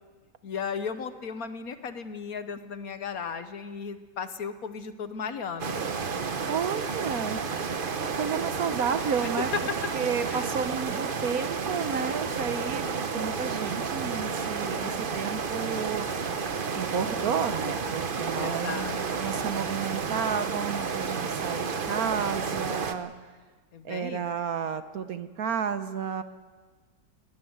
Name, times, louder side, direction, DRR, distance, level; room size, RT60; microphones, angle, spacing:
voice 1, 0.4-5.8 9.4-9.5 10.3-10.5 18.4-19.3 23.7-24.2, left 6 dB, 60° left, 10 dB, 1.3 m, -36 dB
sound 1, 5.6-22.9, right 5 dB, 40° right, 0.8 m, -31 dB
voice 2, 6.5-7.4 8.2-9.5 9.9-23.1 23.8-26.2, right 7 dB, 60° right, 11 dB, 1.3 m, -32 dB
21.5 x 17.5 x 8.0 m, 1.4 s
omnidirectional pair, 1.9 m